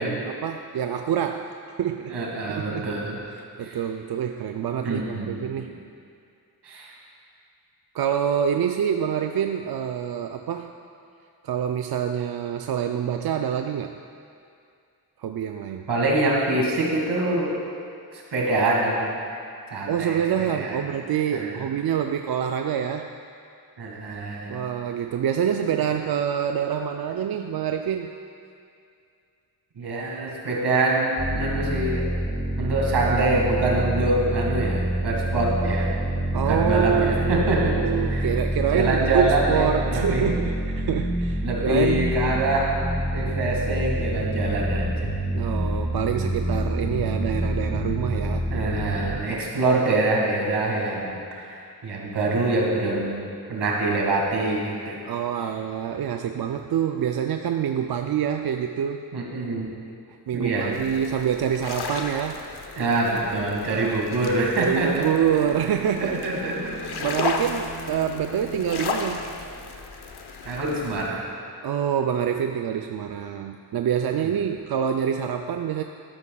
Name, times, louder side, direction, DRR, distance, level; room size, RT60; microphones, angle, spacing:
voice 1, 0.0-2.1 2.5-2.9 3.6-5.7 7.9-10.7 11.4-13.9 15.2-15.9 19.8-23.1 24.5-28.1 36.3-42.1 45.3-48.5 55.0-59.0 60.1-62.5 63.7-64.1 64.6-66.4 67.0-69.3 71.6-75.8, right 8 dB, 65° right, 5 dB, 0.5 m, -26 dB
voice 2, 2.1-3.2 3.6-3.8 4.8-5.3 6.6-7.0 15.9-17.6 18.1-19.1 19.7-20.8 21.3-21.7 23.8-24.6 29.8-32.0 32.6-35.9 36.3-38.3 38.7-40.2 41.4-42.7 43.1-45.2 48.5-55.0 59.1-59.7 60.3-60.8 62.8-65.1 66.0-66.8 70.4-71.2 74.2-74.3, right 2 dB, 85° right, -3 dB, 2.1 m, -25 dB
sound 1, 31.2-49.2, right 1 dB, 15° left, 1.7 m, -27 dB
sound 2, 60.7-71.1, left 4 dB, 75° left, 0.9 m, -35 dB
Bowed string instrument, 65.0-69.9, right 1 dB, 50° right, 1.5 m, -41 dB
12.5 x 12.5 x 2.3 m, 2.4 s
wide cardioid pair, 85°, 39 cm